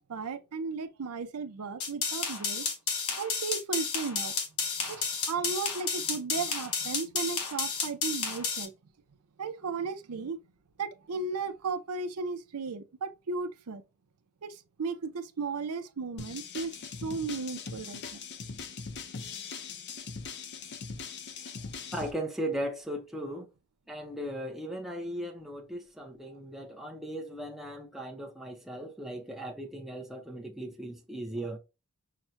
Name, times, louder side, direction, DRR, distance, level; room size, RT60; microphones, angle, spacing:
voice 1, 0.0-2.7 3.2-4.3 4.9-8.7 9.4-10.4 10.8-13.8 14.4-16.7 17.0-18.0, right 4 dB, 80° right, 0.6 m, -35 dB
sound 1, 1.8-8.7, left 5 dB, 75° left, 1.0 m, -32 dB
sound 2, 16.2-22.1, left 5 dB, 50° left, 0.5 m, -41 dB
voice 2, 21.9-23.5 23.9-31.6, right 1 dB, ahead, 0.6 m, -37 dB
5.9 x 2.1 x 2.5 m
head